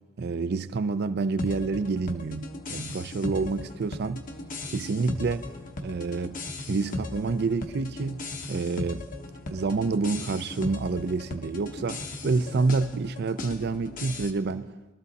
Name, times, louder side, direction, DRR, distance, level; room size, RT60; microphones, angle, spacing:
voice 1, 0.2-4.3 4.7-5.5 5.8-6.4 6.7-9.1 9.5-14.7, right 4 dB, 55° right, 0.4 m, -28 dB
sound 1, 1.4-14.3, left 2 dB, 45° left, 0.9 m, -37 dB
21.0 x 13.0 x 4.1 m
head